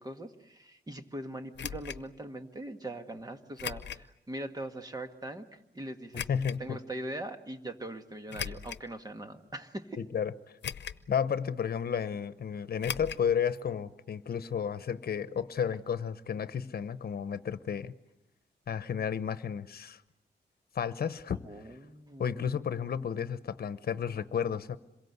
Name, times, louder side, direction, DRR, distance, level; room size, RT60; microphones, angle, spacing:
voice 1, 0.0-5.5 5.7-6.3 6.6-10.0 21.4-22.5, right 1 dB, 20° right, 7 dB, 1.6 m, -41 dB
sound 1, 1.6-2.0 3.6-4.1 4.6-4.7 6.1-6.6 8.3-8.9 9.5-9.6 10.6-11.1 11.4-11.5 12.8-13.3 13.5-13.6 13.9-14.0, left 9 dB, 90° left, 0.9 m, -38 dB
voice 2, 6.3-6.8 10.0-10.3 11.1-17.9 18.7-20.0 20.7-21.5 22.2-24.8, left 7 dB, 60° left, 13 dB, 1.1 m, -32 dB
27.0 x 22.5 x 8.2 m, 0.89 s
wide cardioid pair, 130°, 18 cm